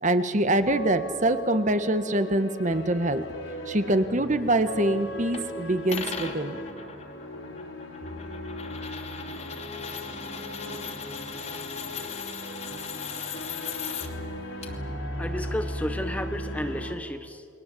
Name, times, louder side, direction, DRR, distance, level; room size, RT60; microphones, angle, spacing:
voice 1, 0.0-3.2 3.7-6.6, right 1 dB, 35° right, 10 dB, 1.3 m, -24 dB
sound 1, 0.5-17.0, equal, 70° left, 3.9 m, -37 dB
sound 2, 5.3-5.4 5.9-14.1 14.6-14.7, left 6 dB, 35° left, 2.7 m, -38 dB
voice 2, 15.2-17.5, equal, 5° left, 9 dB, 0.9 m, -33 dB
29.5 x 22.5 x 8.5 m, 2.2 s
head